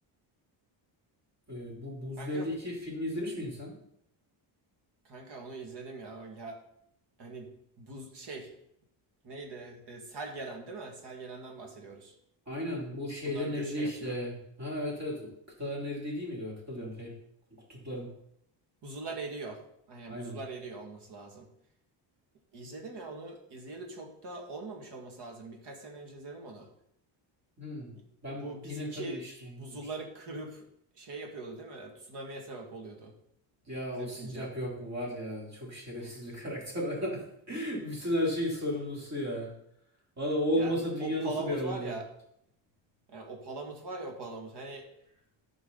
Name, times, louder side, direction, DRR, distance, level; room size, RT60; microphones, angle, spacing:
voice 1, 1.5-3.7 12.5-15.3 15.6-17.1 17.7-18.1 20.1-20.4 27.6-27.9 28.2-29.2 29.6-29.8 33.7-37.2 37.5-39.5 40.2-41.9, equal, 35° right, -3 dB, 3.5 m, -34 dB
voice 2, 2.2-2.5 5.0-6.6 7.2-7.5 7.8-8.5 9.2-12.1 13.2-14.2 18.8-19.6 19.9-21.5 22.5-26.7 28.0-28.1 28.3-29.2 29.6-30.6 31.0-33.1 33.9-34.5 36.0-36.2 40.6-40.7 41.0-42.1 43.1-44.9, right 3 dB, 55° right, 3 dB, 2.2 m, -42 dB
14.0 x 5.2 x 4.1 m, 0.74 s
cardioid pair, 125°, 48 cm